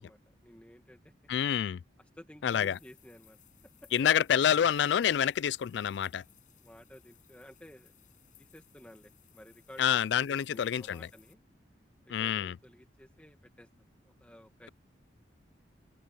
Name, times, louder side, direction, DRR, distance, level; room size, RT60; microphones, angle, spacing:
voice 1, 0.0-1.1 2.1-3.4 3.8-3.9 6.6-7.9 8.4-11.4 12.1-13.7 14.2-14.7, equal, 5° left, 1.7 m, -54 dB
voice 2, 1.3-1.8 2.4-2.8 3.9-6.2 9.8-11.1 12.1-12.6, left 9 dB, 70° left, 0.3 m, -27 dB
sound 1, 2.5-11.3, left 12 dB, 45° left, 7.4 m, -63 dB
open air
head